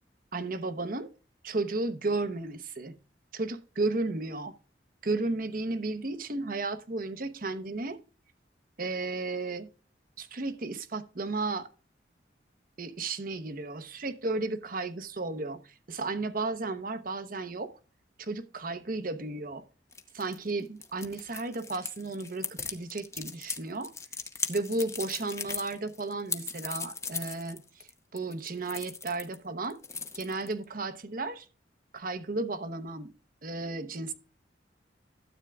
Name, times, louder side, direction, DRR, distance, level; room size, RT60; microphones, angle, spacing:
voice 1, 0.3-1.1 1.4-3.0 3.3-4.5 5.0-8.0 8.8-9.7 10.2-11.7 12.8-17.7 18.2-19.6 20.1-23.9 24.5-29.8 30.1-31.5 31.9-33.1 33.4-34.1, right 3 dB, 50° right, 0.9 m, -33 dB
sound 1, 19.9-29.4 29.6-30.6, left 5 dB, 15° left, 0.8 m, -38 dB
12.5 x 8.1 x 2.4 m
head